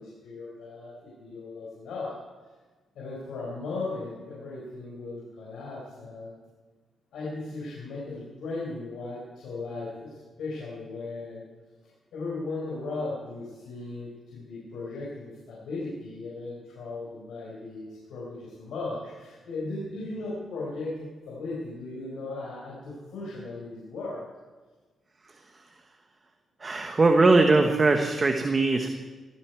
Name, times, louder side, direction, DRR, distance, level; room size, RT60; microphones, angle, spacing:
voice 1, 0.0-2.2 2.9-6.4 7.1-11.4 12.1-24.2, left 3 dB, 85° left, -6 dB, 4.7 m, -37 dB
voice 2, 26.6-28.9, right 3 dB, 35° right, 4 dB, 1.3 m, -21 dB
19.0 x 14.0 x 4.7 m, 1.3 s
cardioid pair, 90°, 0 cm